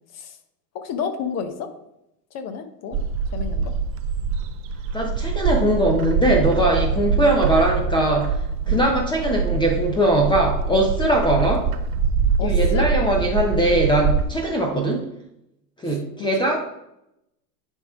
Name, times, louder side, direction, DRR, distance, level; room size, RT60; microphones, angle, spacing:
voice 1, 0.7-1.7 2.3-3.0 3.3-3.7 7.1-7.2 8.7-8.8 12.4-12.9 15.8-16.6, left 6 dB, 30° left, 8 dB, 1.1 m, -31 dB
Bird, 2.9-14.2, right 5 dB, 30° right, 0.5 m, -24 dB
voice 2, 4.9-8.4 8.7-11.7 12.4-15.0 15.8-16.6, right 1 dB, 10° left, 0 dB, 0.8 m, -21 dB
10.0 x 3.7 x 3.7 m, 0.83 s
hypercardioid pair, 100°, 49 cm